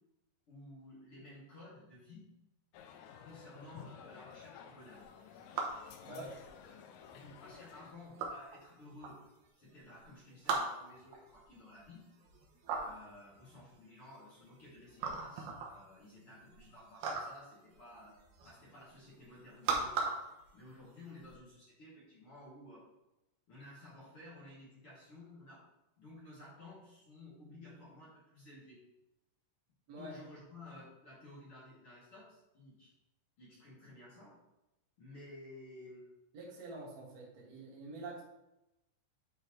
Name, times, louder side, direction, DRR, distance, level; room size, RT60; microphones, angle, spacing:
voice 1, 0.5-2.2 3.2-5.0 6.0-6.4 7.1-9.2 9.6-12.1 12.8-18.1 18.4-20.0 20.5-22.8 23.5-25.6 26.0-28.8 29.9-32.9 33.4-34.3 35.0-36.1, left 1 dB, 35° left, -8 dB, 2.9 m, -54 dB
sound 1, 2.7-7.9, left 7 dB, 90° left, 3.2 m, -53 dB
sound 2, 5.0-21.3, right 4 dB, 70° right, 2.5 m, -41 dB
voice 2, 6.0-6.3 29.9-30.1 36.3-38.2, right 2 dB, 50° right, -4 dB, 2.1 m, -46 dB
10.5 x 5.4 x 3.3 m, 0.92 s
omnidirectional pair, 5.7 m